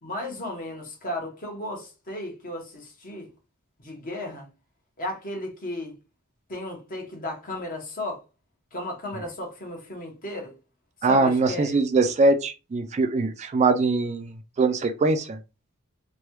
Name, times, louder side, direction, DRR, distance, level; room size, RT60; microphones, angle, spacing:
voice 1, 0.0-3.3 3.8-4.5 5.0-5.9 6.5-8.2 8.7-10.5 11.1-11.8, left 1 dB, 40° left, 1.0 m, -34 dB
voice 2, 11.0-15.4, right 3 dB, 30° right, 0.3 m, -22 dB
3.1 x 2.2 x 3.0 m
head